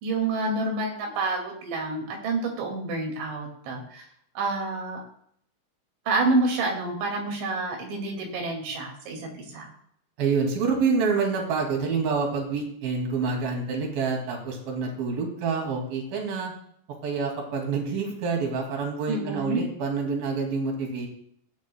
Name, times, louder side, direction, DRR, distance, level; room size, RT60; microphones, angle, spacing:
voice 1, 0.0-4.0 4.4-5.0 6.1-9.7 19.1-19.6, right 3 dB, 80° right, 0 dB, 4.6 m, -28 dB
voice 2, 10.2-16.5 17.0-21.1, right 5 dB, 55° right, 1 dB, 3.8 m, -27 dB
17.5 x 9.3 x 2.3 m, 0.67 s
omnidirectional pair, 5.2 m